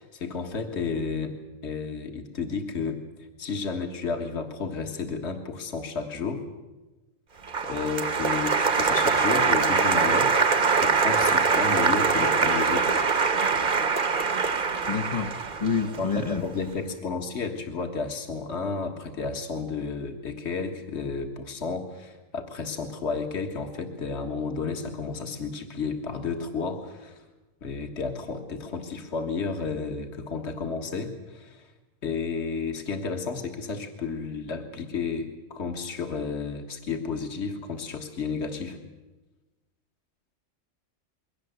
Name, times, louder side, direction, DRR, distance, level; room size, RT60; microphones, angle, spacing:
voice 1, 0.0-1.3 1.6-3.0 3.4-6.4 7.6-10.3 10.8-12.9 15.9-27.2 27.6-31.7 32.0-38.8, left 4 dB, 50° left, 4 dB, 2.0 m, -32 dB
Applause, 7.5-16.6, right 5 dB, 40° right, 1.0 m, -23 dB
voice 2, 14.8-15.3 15.6-16.4, left 6 dB, 30° left, 3 dB, 0.8 m, -27 dB
22.0 x 18.0 x 7.9 m, 1.1 s
omnidirectional pair, 1.5 m